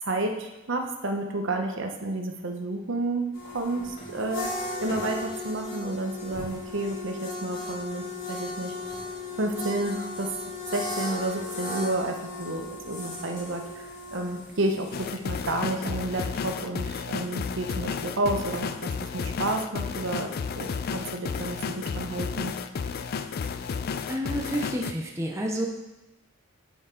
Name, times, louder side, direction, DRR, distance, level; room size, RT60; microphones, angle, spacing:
voice 1, 0.0-4.5 4.8-8.7 9.4-10.3 10.7-22.5, right 2 dB, 60° right, 4 dB, 0.8 m, -31 dB
sound 1, 3.3-15.8, left 2 dB, 75° left, 2.6 m, -36 dB
sound 2, 14.9-24.9, left 6 dB, 45° left, 0.3 m, -32 dB
voice 2, 24.1-25.7, equal, 15° right, 1 dB, 0.6 m, -29 dB
9.8 x 4.7 x 3.7 m, 0.99 s
head